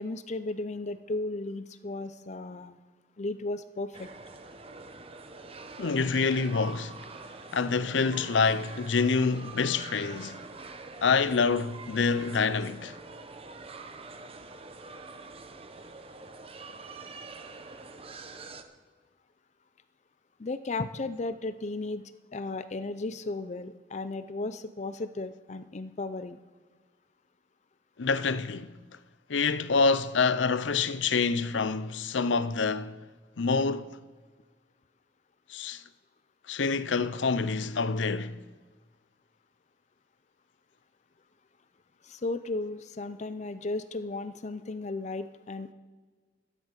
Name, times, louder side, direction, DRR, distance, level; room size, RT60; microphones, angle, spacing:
voice 1, 0.0-2.8 3.2-4.1 20.4-22.0 22.3-26.4 42.0-45.7, left 2 dB, 40° left, 0.5 m, -35 dB
sound 1, 3.9-18.6, right 3 dB, 30° right, 1.0 m, -45 dB
voice 2, 5.8-6.9 7.5-10.4 11.0-13.0 28.0-28.7 29.3-33.0 33.4-34.0 35.5-35.8 36.5-38.4, left 4 dB, 85° left, 0.6 m, -27 dB
13.0 x 10.5 x 6.6 m
head